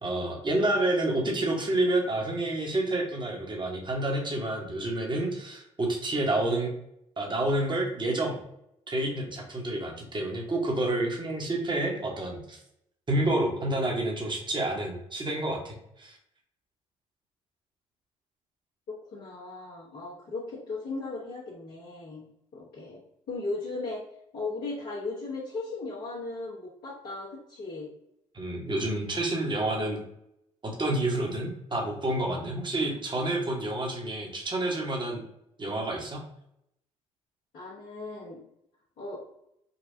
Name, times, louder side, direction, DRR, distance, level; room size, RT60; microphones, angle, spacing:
voice 1, 0.0-6.7 7.2-8.4 8.9-12.6 13.1-16.2 28.3-30.0 30.6-35.2 35.6-36.2, right 1 dB, 30° right, 0 dB, 1.2 m, -29 dB
voice 2, 18.9-22.2 22.5-23.0 23.3-24.0 24.3-27.9 37.5-38.4 39.0-39.2, left 3 dB, 65° left, -10 dB, 1.3 m, -37 dB
4.1 x 2.3 x 2.7 m, 0.77 s
hypercardioid pair, 50°, 17 cm